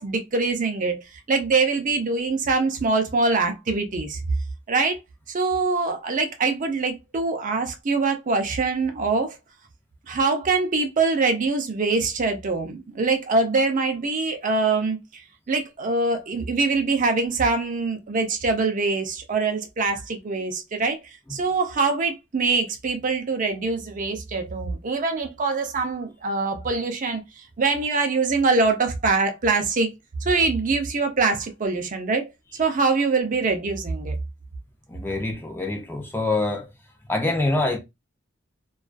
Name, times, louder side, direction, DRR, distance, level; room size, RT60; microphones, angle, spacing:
voice 1, 0.0-4.2 4.7-5.0 5.3-9.4 10.1-15.2 15.5-29.9 30.2-32.3 32.6-34.2, right 3 dB, 40° right, 0.5 m, -24 dB
voice 2, 34.9-36.7 37.1-37.8, left 2 dB, 10° left, 0.4 m, -25 dB
2.3 x 2.3 x 2.4 m
head